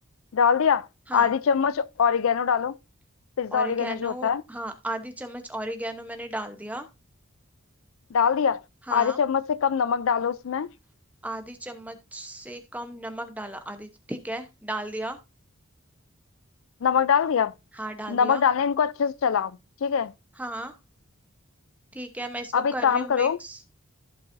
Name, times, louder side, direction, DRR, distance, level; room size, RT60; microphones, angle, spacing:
voice 1, 0.3-0.9 1.1-2.8 3.4-4.4 8.1-8.6 8.9-10.7 16.8-17.5 18.1-19.5 19.8-20.1 22.5-23.4, left 7 dB, 75° left, 0.4 m, -23 dB
voice 2, 3.5-6.9 8.9-9.2 11.2-15.2 17.7-18.4 20.4-20.7 21.9-23.7, right 1 dB, 5° right, 0.9 m, -35 dB
15.0 x 5.5 x 2.6 m
head